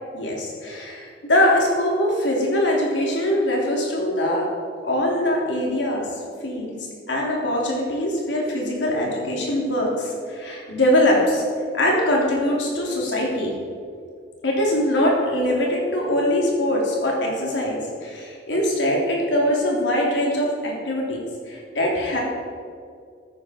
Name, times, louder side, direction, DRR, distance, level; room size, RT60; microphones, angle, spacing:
voice 1, 0.1-4.5 4.8-6.0 6.4-6.7 7.1-11.4 11.7-13.5 14.4-21.2 21.5-22.2, left 1 dB, 80° left, -2 dB, 3.3 m, -22 dB
13.0 x 10.5 x 4.5 m, 2.2 s
head